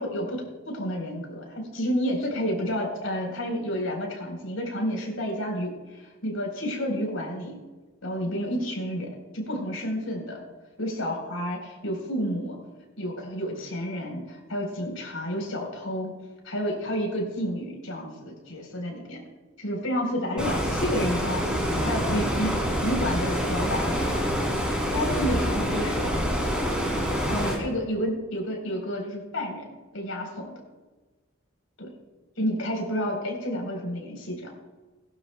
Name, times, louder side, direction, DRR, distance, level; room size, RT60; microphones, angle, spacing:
voice 1, 0.0-7.6 8.0-10.4 10.8-12.6 13.0-16.1 16.4-19.2 19.6-24.1 24.9-26.1 27.2-30.5 31.8-31.9 32.4-34.5, equal, 85° left, 1 dB, 4.0 m, -30 dB
Stream, 20.4-27.6, equal, 5° right, 2.9 m, -26 dB
20.5 x 12.0 x 2.3 m, 1.2 s
head